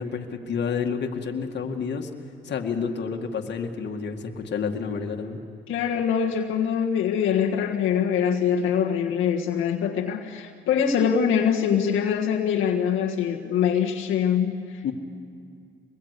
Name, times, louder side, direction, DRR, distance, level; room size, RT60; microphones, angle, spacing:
voice 1, 0.0-2.1 2.4-5.4 14.8-14.9, left 6 dB, 60° left, 3 dB, 2.1 m, -29 dB
voice 2, 5.7-14.8, left 8 dB, 85° left, -1 dB, 1.7 m, -24 dB
25.0 x 21.0 x 8.3 m, 2.3 s
cardioid pair, 90°, 20 cm